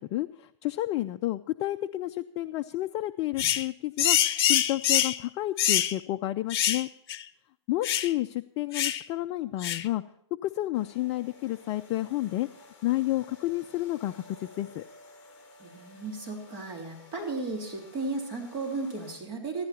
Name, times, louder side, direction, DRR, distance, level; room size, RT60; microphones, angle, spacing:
voice 1, 0.0-4.2 4.4-6.9 7.7-10.0 10.4-12.5 12.8-14.8, left 16 dB, 30° left, 8 dB, 0.5 m, -30 dB
sound 1, 3.4-3.7 4.0-5.2 5.6-5.9 6.5-6.8 7.1-7.2 7.8-8.1 8.7-9.0 9.6-9.9, left 11 dB, 55° left, 0.9 m, -25 dB
sound 2, 10.7-19.1, left 1 dB, 15° left, 5.2 m, -53 dB
voice 2, 15.6-19.7, right 3 dB, 30° right, 1 dB, 3.4 m, -35 dB
15.0 x 14.5 x 4.3 m, 0.71 s
hypercardioid pair, 140°, 15 cm